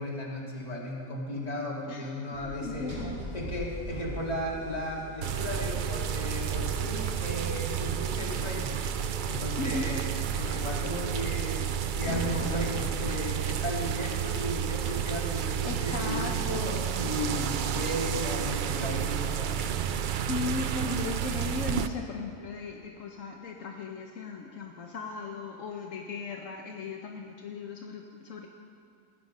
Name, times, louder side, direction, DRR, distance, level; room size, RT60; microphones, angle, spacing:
voice 1, 0.0-2.9 3.3-8.8 9.3-11.6 12.0-20.2, left 1 dB, 30° left, -4 dB, 2.3 m, -35 dB
voice 2, 1.9-3.2 9.6-9.9 15.6-17.0 20.0-28.5, left 4 dB, 70° left, 1 dB, 1.2 m, -37 dB
Sliding door, 2.3-7.2 8.8-13.7, equal, 50° right, 4.3 m, -40 dB
sound 1, 5.2-21.9, right 9 dB, 80° right, 0.4 m, -31 dB
16.0 x 9.7 x 5.3 m, 2.3 s
omnidirectional pair, 1.4 m